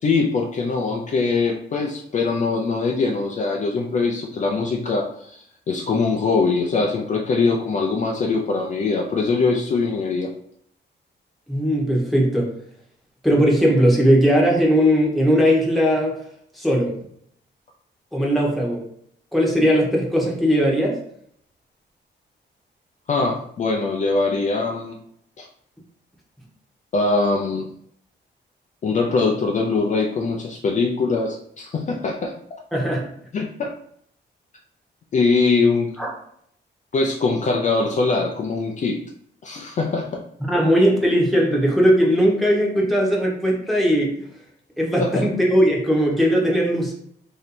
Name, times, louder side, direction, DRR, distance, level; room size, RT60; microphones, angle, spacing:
voice 1, 0.0-10.3 23.1-25.0 25.4-25.5 26.9-27.7 28.8-32.3 33.3-33.7 35.1-35.9 36.9-39.0 39.4-40.2 45.0-45.3, left 4 dB, 40° left, 0 dB, 0.4 m, -22 dB
voice 2, 11.5-12.5 13.2-16.2 16.5-17.0 18.1-18.8 19.3-21.0 32.7-33.1 36.0-36.1 40.5-44.2 44.8-46.9, equal, ahead, -2 dB, 1.0 m, -18 dB
3.1 x 2.7 x 4.1 m, 0.68 s
wide cardioid pair, 135°, 19 cm